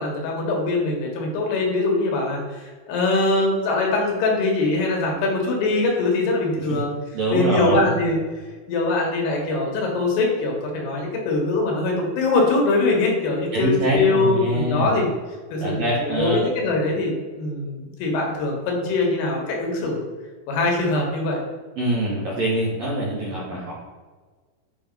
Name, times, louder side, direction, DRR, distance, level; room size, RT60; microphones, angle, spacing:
voice 1, 0.0-2.4 2.9-6.9 7.3-8.2 8.7-15.1 15.5-15.7 16.0-20.0 20.5-21.4, left 2 dB, 90° left, 0 dB, 3.4 m, -22 dB
voice 2, 7.1-8.0 13.5-15.0 15.6-16.4 21.8-23.7, right 1 dB, 65° right, -6 dB, 1.7 m, -24 dB
7.9 x 3.0 x 5.2 m, 1.4 s
omnidirectional pair, 4.6 m